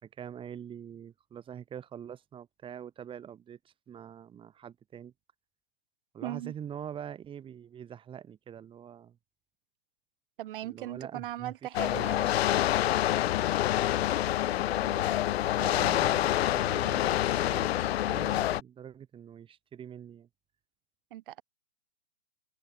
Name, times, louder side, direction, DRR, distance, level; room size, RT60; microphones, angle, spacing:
voice 1, 0.0-5.1 6.1-9.2 10.6-11.5 11.9-12.1 14.7-15.2 15.6-20.3, right 9 dB, 15° right, 3.9 m, -44 dB
voice 2, 6.2-6.5 10.4-12.3 21.1-21.4, right 14 dB, 50° right, 4.6 m, -39 dB
sound 1, 11.7-18.6, left 13 dB, 70° left, 0.5 m, -27 dB
open air
hypercardioid pair, 145°, 33 cm